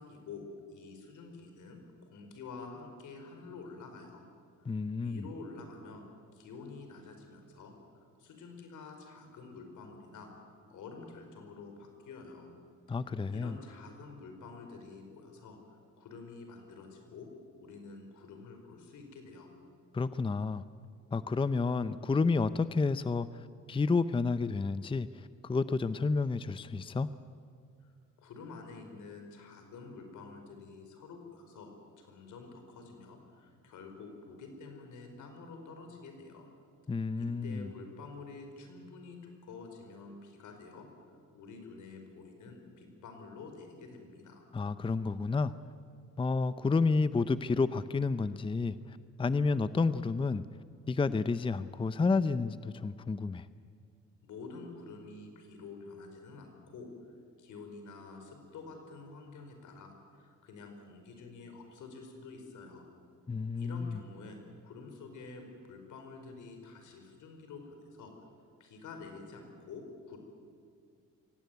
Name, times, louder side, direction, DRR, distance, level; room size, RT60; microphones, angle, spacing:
voice 1, 0.0-4.3 4.6-4.7 5.0-6.0 6.3-10.3 10.7-12.5 13.3-17.3 17.6-19.5 27.8-27.9 28.2-31.7 32.0-36.5 37.2-44.4 54.2-56.9 57.4-62.8 63.6-68.1 68.6-70.2, left 4 dB, 80° left, 4 dB, 4.9 m, -48 dB
voice 2, 4.7-5.2 12.9-13.6 19.9-20.6 21.1-27.1 36.9-37.7 44.5-45.5 46.2-48.8 49.2-50.4 50.9-53.5 63.3-63.9, left 4 dB, 15° left, 14 dB, 0.6 m, -30 dB
23.0 x 17.5 x 9.4 m, 2.2 s
cardioid pair, 90°, 30 cm